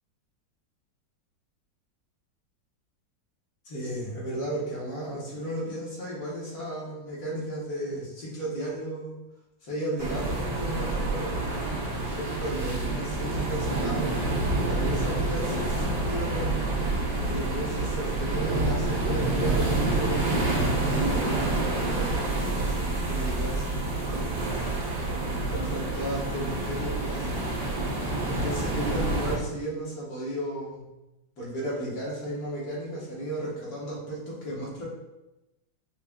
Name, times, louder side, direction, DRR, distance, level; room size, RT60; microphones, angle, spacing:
voice 1, 3.7-9.2 9.6-11.4 12.0-14.2 14.7-16.5 17.1-24.3 25.0-27.4 28.2-30.8 31.4-34.9, right 1 dB, 55° left, -6 dB, 1.6 m, -34 dB
sound 1, 10.0-29.4, right 2 dB, 70° right, 1.5 m, -28 dB
5.7 x 2.5 x 2.3 m, 0.96 s
omnidirectional pair, 2.0 m